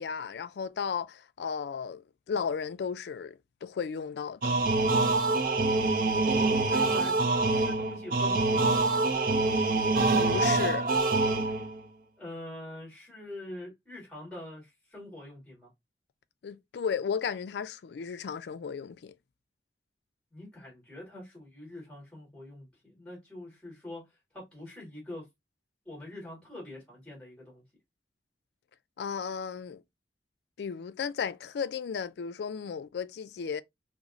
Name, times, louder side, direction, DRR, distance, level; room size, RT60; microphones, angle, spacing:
voice 1, 0.0-4.6 10.1-10.8 16.4-19.1 29.0-29.8 30.6-33.6, left 6 dB, 75° left, 0.3 m, -34 dB
sound 1, 4.4-11.8, right 3 dB, 50° right, 0.5 m, -25 dB
voice 2, 6.6-7.2 7.5-9.1 12.2-15.7 20.3-25.3 25.9-27.6, left 1 dB, 5° left, 2.1 m, -44 dB
4.7 x 2.0 x 2.5 m
head